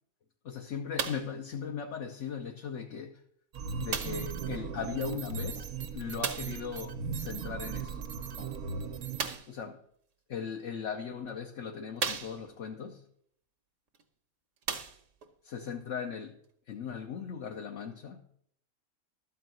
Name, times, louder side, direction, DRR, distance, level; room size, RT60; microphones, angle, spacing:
voice 1, 0.4-3.2 3.8-8.1 8.4-8.5 9.5-9.8 10.3-13.0 15.4-16.4 16.7-18.2, left 6 dB, 60° left, 1.1 m, -38 dB
sound 1, 1.0-1.4 2.3-2.4 3.9-4.3 6.2-6.6 9.1-9.6 10.6-10.7 11.3-11.4 12.0-12.7 13.9-14.0 14.6-15.3 16.1-16.2, right 6 dB, 60° right, 1.3 m, -35 dB
sound 2, 3.5-9.4, right 5 dB, 85° right, 1.3 m, -38 dB
13.0 x 4.7 x 7.6 m
omnidirectional pair, 1.5 m